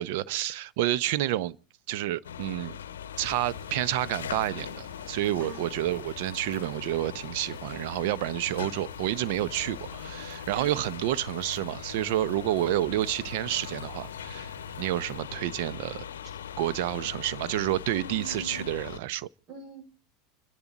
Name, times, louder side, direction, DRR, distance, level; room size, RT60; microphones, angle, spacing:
voice 1, 0.0-1.6 1.9-2.8 3.2-16.0 16.6-19.3, right 13 dB, 65° right, 0.7 m, -29 dB
sound 1, 2.2-19.0, left 9 dB, 85° left, 0.7 m, -40 dB
sound 2, 3.2-15.2, right 3 dB, 90° right, 6.0 m, -52 dB
voice 2, 5.4-5.9 10.6-10.9 16.2-16.4 17.9-18.7 19.5-19.8, right 2 dB, 45° right, 4.6 m, -44 dB
30.0 x 10.5 x 4.0 m
hypercardioid pair, 95°, 0 cm